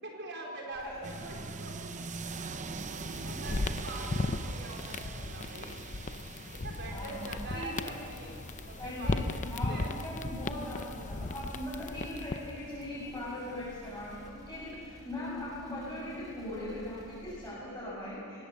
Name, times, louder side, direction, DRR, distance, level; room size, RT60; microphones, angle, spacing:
voice 1, 0.0-1.8 3.1-5.8 6.5-8.4 8.6-9.4 9.7-10.0, right 2 dB, 50° right, 0 dB, 4.6 m, -44 dB
sound 1, 0.7-17.5, equal, 15° right, 3.6 m, -54 dB
sound 2, 1.0-14.3, right 4 dB, 35° right, 0.8 m, -44 dB
sound 3, 2.8-12.6, left 2 dB, 35° left, 0.6 m, -37 dB
voice 2, 6.9-7.2 7.5-7.9 8.8-18.4, left 1 dB, 10° left, -11 dB, 7.7 m, -40 dB
24.5 x 19.5 x 6.9 m, 2.4 s
head